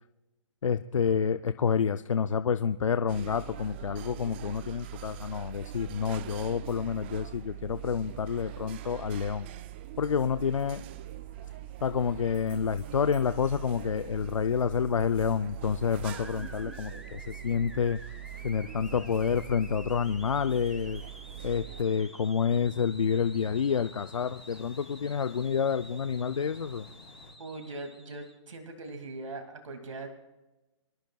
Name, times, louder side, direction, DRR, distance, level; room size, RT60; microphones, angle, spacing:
voice 1, 0.6-9.5 10.0-10.8 11.8-18.0 18.4-21.0 21.4-26.9, left 6 dB, 85° left, 11 dB, 0.5 m, -28 dB
sound 1, 3.1-21.8, right 14 dB, 20° right, 0.4 m, -42 dB
sound 2, 8.0-27.3, left 4 dB, 30° left, 3.7 m, -58 dB
sound 3, 16.0-28.4, equal, ahead, 1.0 m, -50 dB
voice 2, 27.4-30.1, right 2 dB, 80° right, 5 dB, 2.3 m, -41 dB
25.0 x 13.5 x 2.3 m, 1.0 s
hypercardioid pair, 150°, 16 cm